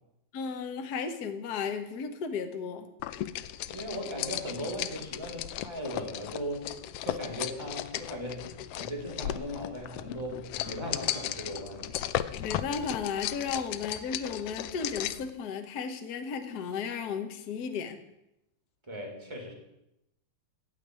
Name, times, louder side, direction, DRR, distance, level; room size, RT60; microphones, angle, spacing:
voice 1, 0.3-2.9 12.4-18.0, left 6 dB, 50° left, 7 dB, 1.2 m, -34 dB
sound 1, 3.0-15.3, left 12 dB, 80° left, 1.4 m, -36 dB
voice 2, 3.7-6.7 7.0-11.9 18.9-19.5, equal, 10° right, 1 dB, 3.3 m, -38 dB
15.0 x 5.2 x 9.7 m, 0.85 s
omnidirectional pair, 3.3 m